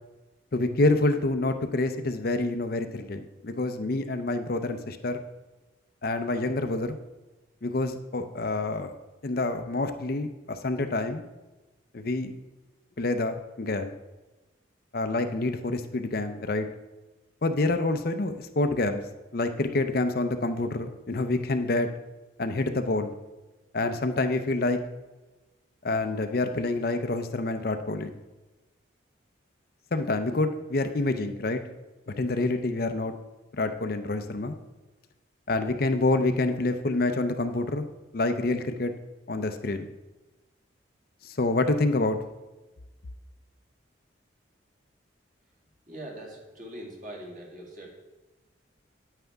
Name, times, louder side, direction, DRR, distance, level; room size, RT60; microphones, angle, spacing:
voice 1, 0.5-5.2 6.0-7.0 7.6-8.9 9.2-11.2 11.9-12.3 13.0-13.9 14.9-16.7 17.4-19.0 19.3-21.9 22.4-23.1 23.7-24.8 25.8-28.1 29.9-31.6 32.1-33.1 33.6-34.6 35.5-37.9 38.1-38.9 39.3-39.9 41.2-42.2, left 2 dB, 50° left, 7 dB, 0.6 m, -27 dB
voice 2, 45.9-47.9, right 1 dB, 40° right, -1 dB, 2.1 m, -42 dB
9.2 x 9.1 x 3.5 m, 1.1 s
head